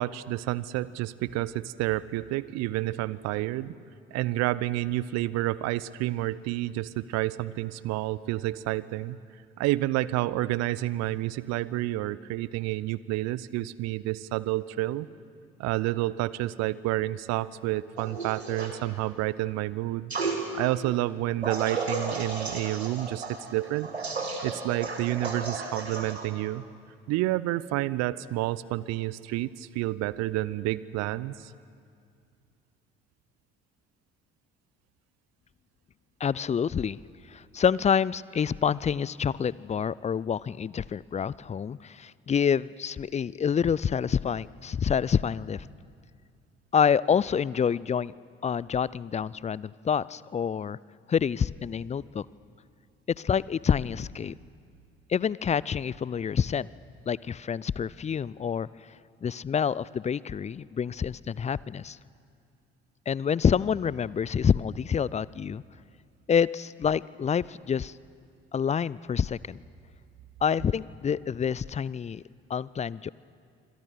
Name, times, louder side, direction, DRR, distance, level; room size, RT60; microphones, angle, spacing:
voice 1, 0.0-3.7 4.1-9.2 9.6-15.1 15.6-20.1 20.5-23.9 24.4-26.6 27.1-31.5, right 16 dB, 55° right, 19 dB, 0.8 m, -29 dB
sound 1, 18.0-18.7 20.1-20.4 21.4-26.3, right 3 dB, 90° right, 1.8 m, -33 dB
voice 2, 36.2-37.0 37.3-45.7 46.7-48.1 48.4-50.8 51.1-52.3 53.2-54.3 55.1-56.7 57.1-58.7 59.2-62.0 63.1-65.6 66.3-67.9 68.5-69.6 70.4-72.2 72.5-73.1, left 7 dB, 20° left, 22 dB, 0.5 m, -27 dB
27.5 x 25.5 x 6.6 m, 2.3 s
figure-of-eight pair, 50°, 31 cm